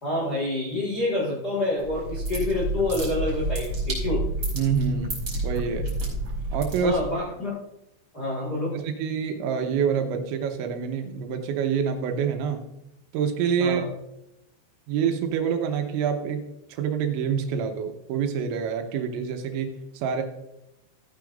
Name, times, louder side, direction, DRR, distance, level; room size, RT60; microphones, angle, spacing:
voice 1, 0.0-4.3 6.8-7.6 8.1-8.8 13.6-13.9, left 2 dB, 65° left, -5 dB, 0.9 m, -27 dB
sound 1, 1.8-7.2, right 2 dB, 20° right, 4.9 m, -30 dB
voice 2, 4.5-5.9 6.5-7.0 8.7-12.7 13.1-13.8 14.9-16.4 16.7-20.2, right 7 dB, 90° right, 5 dB, 3.2 m, -27 dB
15.5 x 9.2 x 2.6 m, 0.87 s
omnidirectional pair, 5.3 m